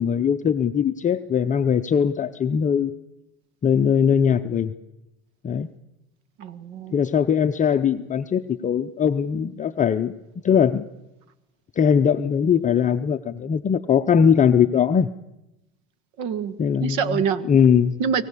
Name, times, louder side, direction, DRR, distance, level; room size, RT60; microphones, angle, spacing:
voice 1, 0.0-2.9 3.6-4.7 5.4-5.7 6.9-10.1 10.4-10.9 11.8-15.1 16.6-17.2 17.5-18.0, left 7 dB, 25° left, 7 dB, 0.7 m, -20 dB
voice 2, 6.4-7.0 16.2-17.4 18.0-18.2, right 7 dB, 60° right, 14 dB, 1.8 m, -26 dB
24.5 x 16.0 x 8.4 m, 0.95 s
supercardioid pair, 105°, 33 cm